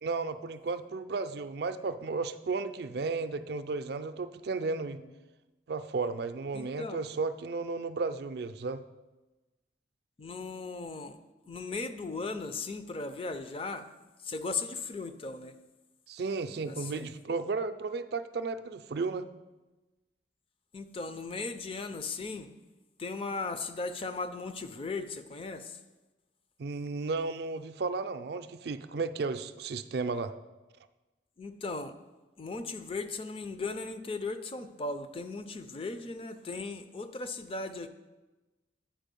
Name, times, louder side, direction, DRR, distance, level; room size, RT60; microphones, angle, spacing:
voice 1, 0.0-5.0 5.7-8.8 16.1-19.3 26.6-30.3, right 4 dB, 60° right, 11 dB, 0.4 m, -34 dB
voice 2, 6.5-7.0 10.2-11.2 11.5-13.9 14.2-15.5 16.7-17.1 20.7-22.5 23.0-25.8 31.4-31.9 32.4-37.9, left 3 dB, 30° left, 9 dB, 0.4 m, -37 dB
8.9 x 4.8 x 5.3 m, 1.1 s
head